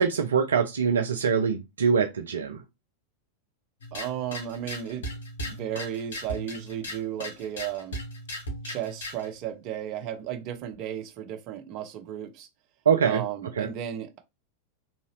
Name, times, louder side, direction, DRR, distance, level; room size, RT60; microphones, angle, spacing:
voice 1, 0.0-2.6 12.9-13.2 13.6-13.7, right 6 dB, 70° right, 0.5 m, -23 dB
sound 1, 3.8-9.3, equal, 60° left, 1.6 m, -37 dB
voice 2, 3.9-5.1 5.4-8.0 8.6-12.5 13.0-14.2, right 10 dB, 40° right, 0.9 m, -34 dB
3.7 x 2.7 x 3.0 m
figure-of-eight pair, 90°, 0 cm